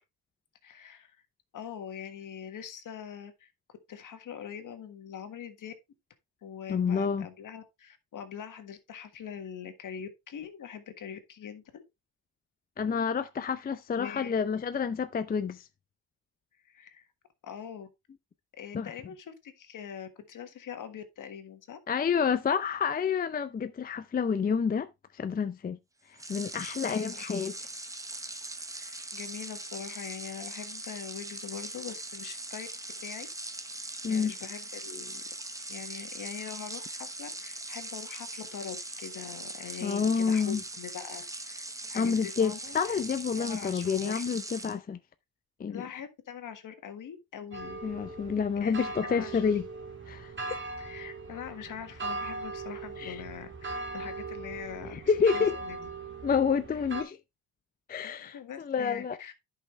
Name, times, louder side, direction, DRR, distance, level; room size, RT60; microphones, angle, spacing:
voice 1, 0.6-1.1 1.5-3.5 3.9-5.7 6.4-11.8 13.6-14.3 16.6-17.0 17.4-17.9 18.6-21.8 26.9-27.2 28.7-32.7 33.0-33.3 34.1-35.2 35.7-43.0 43.4-44.2 45.7-47.8 48.6-49.5 50.8-55.8 56.7-56.8 58.0-59.3, left 8 dB, 55° left, 1.6 m, -43 dB
voice 2, 6.7-7.3 12.8-15.7 18.7-18.9 21.9-25.8 26.3-27.5 34.0-34.3 39.8-40.6 42.0-45.0 45.6-45.8 47.8-49.6 50.1-50.3 53.0-53.2 54.9-55.5 56.2-57.2 57.9-59.2, left 6 dB, 25° left, 0.5 m, -29 dB
sound 1, 26.1-44.8, right 2 dB, 10° right, 0.9 m, -41 dB
sound 2, 47.5-57.0, right 3 dB, 30° right, 2.1 m, -39 dB
10.5 x 5.7 x 3.1 m
cardioid pair, 95°, 37 cm